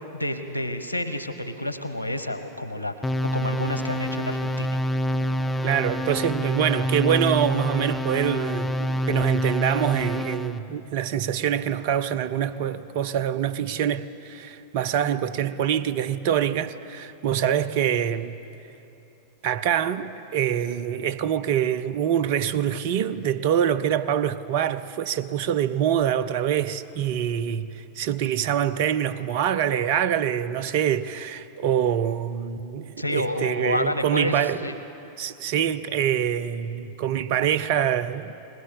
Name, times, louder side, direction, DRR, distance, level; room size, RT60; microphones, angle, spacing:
voice 1, 0.1-2.9 3.3-4.8 33.0-34.7, left 1 dB, 90° right, 1.2 m, -29 dB
sound 1, 3.0-10.6, equal, 10° left, 0.7 m, -27 dB
voice 2, 5.6-18.3 19.4-34.6 35.2-38.3, right 9 dB, 50° right, 0.7 m, -25 dB
20.5 x 20.0 x 7.4 m
figure-of-eight pair, 90°, 0 cm